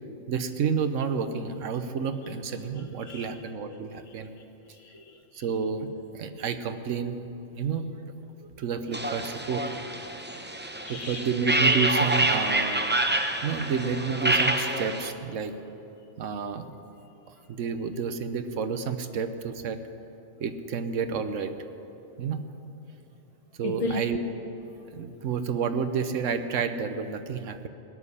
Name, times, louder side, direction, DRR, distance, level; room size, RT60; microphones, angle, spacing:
voice 1, 0.3-4.3 5.3-7.2 7.6-7.9 8.6-9.6 10.9-12.8 13.4-15.5 16.2-16.7 17.5-19.8 20.4-21.5 22.2-22.4 23.6-24.2 24.9-27.7, right 6 dB, 70° right, 10 dB, 1.2 m, -30 dB
voice 2, 2.8-3.3 3.7-3.8 4.1-4.2 4.7-5.5 8.4-8.5 10.2-11.3 23.6-24.0 25.0-25.1, left 1 dB, 30° left, 2 dB, 0.7 m, -37 dB
sound 1, 8.9-15.1, right 1 dB, 15° right, 0.4 m, -27 dB
17.0 x 7.4 x 9.9 m, 3.0 s
omnidirectional pair, 1.4 m